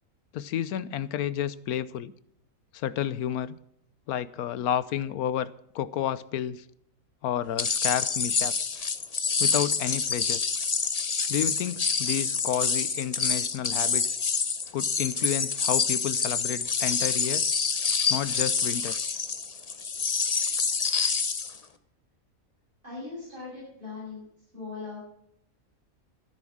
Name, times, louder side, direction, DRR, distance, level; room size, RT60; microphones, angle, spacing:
voice 1, 0.3-2.1 2.7-3.6 4.1-5.5 5.7-6.6 7.2-8.8 9.4-10.4 11.3-14.2 14.7-17.5 18.1-19.0, left 10 dB, 90° left, 1.2 m, -31 dB
sound 1, 7.6-21.6, left 5 dB, 35° left, 0.7 m, -27 dB
voice 2, 22.8-24.2 24.5-25.0, left 4 dB, 35° right, 7.0 m, -39 dB
13.0 x 11.0 x 6.2 m
omnidirectional pair, 1.5 m